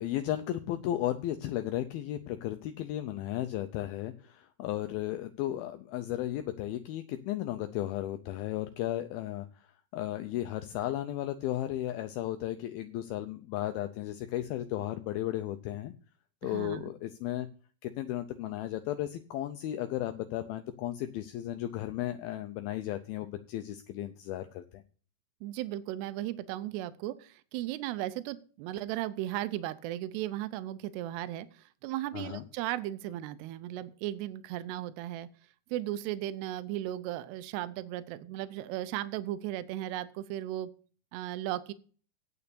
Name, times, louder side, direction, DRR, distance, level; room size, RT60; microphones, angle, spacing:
voice 1, 0.0-9.5 9.9-15.9 16.4-17.5 17.8-24.8 32.1-32.4, left 13 dB, 80° left, 8 dB, 2.3 m, -34 dB
voice 2, 16.4-16.9 25.4-35.3 35.7-40.7 41.1-41.7, right 14 dB, 85° right, 14 dB, 2.8 m, -36 dB
8.9 x 6.9 x 6.9 m, 0.40 s
omnidirectional pair, 4.7 m